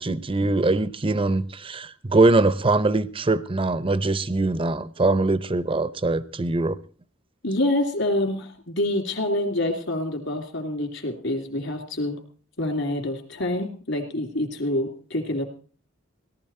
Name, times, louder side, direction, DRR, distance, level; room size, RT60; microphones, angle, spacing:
voice 1, 0.0-6.8, right 2 dB, 25° right, 17 dB, 0.7 m, -22 dB
voice 2, 7.4-12.2 12.6-15.4, left 1 dB, 65° left, 4 dB, 3.1 m, -26 dB
17.5 x 12.5 x 4.4 m, 0.40 s
head